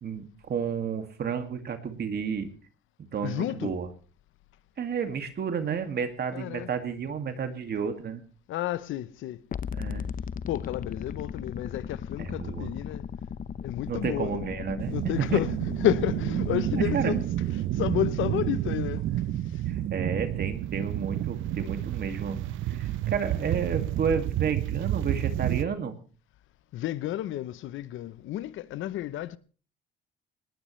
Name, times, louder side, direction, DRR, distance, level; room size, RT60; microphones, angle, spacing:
voice 1, 0.0-2.5 3.1-3.9 4.8-8.2 9.7-10.1 12.2-12.7 13.9-15.0 15.3-15.4 16.8-17.1 19.7-22.4 22.7-25.9, right 6 dB, 55° right, 2.2 m, -31 dB
voice 2, 3.2-3.7 6.3-6.7 8.5-9.4 10.5-13.1 13.6-14.4 14.9-17.2 17.7-19.2 19.5-19.6 26.7-29.4, left 13 dB, 85° left, 0.8 m, -31 dB
sound 1, 9.5-17.3, left 7 dB, 45° left, 0.8 m, -37 dB
sound 2, 14.8-25.6, right 13 dB, 80° right, 0.7 m, -30 dB
19.5 x 18.5 x 3.2 m
cardioid pair, 90°, 20 cm